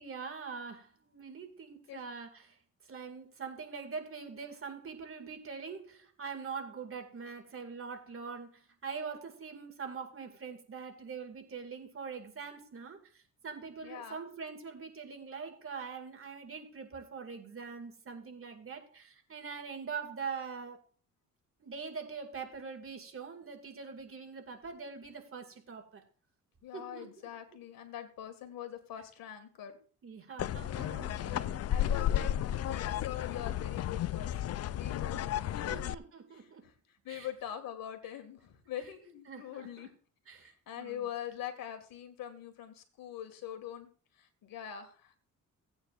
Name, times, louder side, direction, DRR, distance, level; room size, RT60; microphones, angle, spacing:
voice 1, 0.0-2.6 2.9-13.0 13.4-20.8 21.6-26.0 26.7-27.1 30.0-31.8 35.7-36.7 37.1-37.3 39.3-39.9 40.3-41.0, right 5 dB, 40° right, 2.1 m, -43 dB
voice 2, 13.8-14.2 26.6-29.8 31.7-35.8 36.3-39.9 40.4-43.9 44.2-45.2, left 10 dB, 85° left, 2.0 m, -43 dB
sound 1, 30.4-35.9, left 11 dB, 50° left, 0.4 m, -33 dB
17.0 x 8.9 x 2.5 m
cardioid pair, 100°, 33 cm